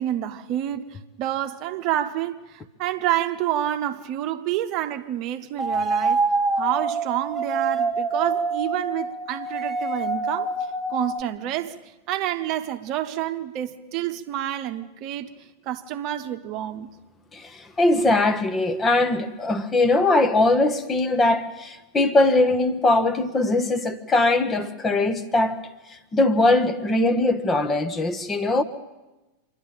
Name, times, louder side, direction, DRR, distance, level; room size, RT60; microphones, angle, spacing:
voice 1, 0.0-6.2 6.5-10.5 10.9-11.7 12.1-15.3 15.6-16.9, right 12 dB, 40° right, 1.0 m, -28 dB
sound 1, 5.6-11.2, right 3 dB, 15° right, 1.4 m, -26 dB
voice 2, 17.3-25.6 26.1-28.6, left 2 dB, 20° left, 1.2 m, -21 dB
26.5 x 11.5 x 9.0 m
figure-of-eight pair, 90°, 0 cm